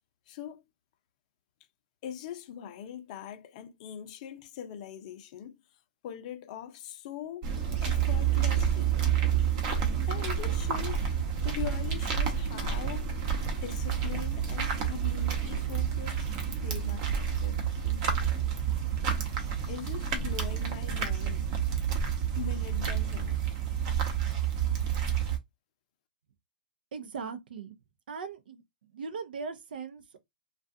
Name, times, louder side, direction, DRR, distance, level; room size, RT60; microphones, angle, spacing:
voice 1, 0.3-0.6 2.0-5.6 6.0-7.5 7.8-8.9 10.1-11.1 11.4-13.2 13.6-18.5 19.7-21.5 22.4-23.4, left 9 dB, 45° left, 0.6 m, -42 dB
sound 1, 7.4-25.4, right 8 dB, 40° right, 0.9 m, -29 dB
voice 2, 26.9-27.7 28.1-28.6 28.9-30.2, right 5 dB, 70° right, 0.6 m, -39 dB
2.4 x 2.3 x 2.6 m
hypercardioid pair, 130°, 5 cm